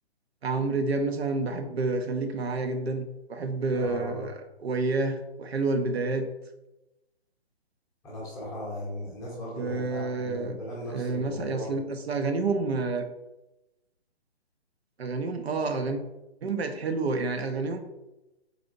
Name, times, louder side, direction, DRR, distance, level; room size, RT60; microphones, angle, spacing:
voice 1, 0.4-6.3 9.6-10.6 10.9-13.1 15.0-16.0 16.4-17.8, right 3 dB, 70° right, 6 dB, 0.5 m, -29 dB
voice 2, 3.7-4.3 8.0-11.8, left 1 dB, 10° left, -6 dB, 0.7 m, -37 dB
3.9 x 2.7 x 2.5 m, 0.97 s
figure-of-eight pair, 135°, 32 cm